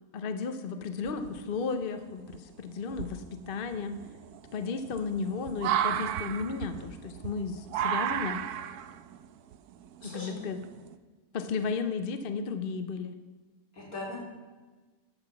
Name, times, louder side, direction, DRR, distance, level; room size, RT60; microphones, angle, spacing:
voice 1, 0.1-4.0 4.5-8.4 10.0-10.6 11.3-13.1, left 5 dB, 50° left, 9 dB, 0.7 m, -34 dB
sound 1, 1.0-1.7 2.3-2.4 2.9-10.9, right 9 dB, 90° right, 1.1 m, -34 dB
voice 2, 10.0-10.4 13.8-14.2, left 2 dB, 70° left, -6 dB, 4.3 m, -39 dB
12.5 x 5.8 x 7.1 m, 1.3 s
omnidirectional pair, 1.6 m